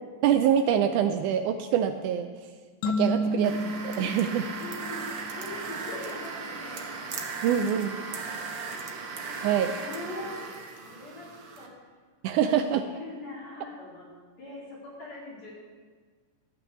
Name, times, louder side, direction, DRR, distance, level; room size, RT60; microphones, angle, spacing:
voice 1, 0.2-2.3 2.8-4.5 7.4-7.9 9.4-9.7 12.2-12.9, right 9 dB, 80° right, 7 dB, 1.8 m, -25 dB
sound 1, 2.8-5.5, left 1 dB, 75° left, 1.9 m, -31 dB
voice 2, 3.1-3.8 4.6-5.1 5.4-6.9 7.3-7.8 8.3-8.9 9.3-9.4 9.7-11.3 11.6-11.7 12.3-12.4 12.8-14.1 14.4-15.5, left 2 dB, 55° left, -8 dB, 4.2 m, -42 dB
sound 2, 3.4-11.7, right 4 dB, 65° right, 1.4 m, -37 dB
12.0 x 6.0 x 7.9 m, 1.5 s
omnidirectional pair, 3.9 m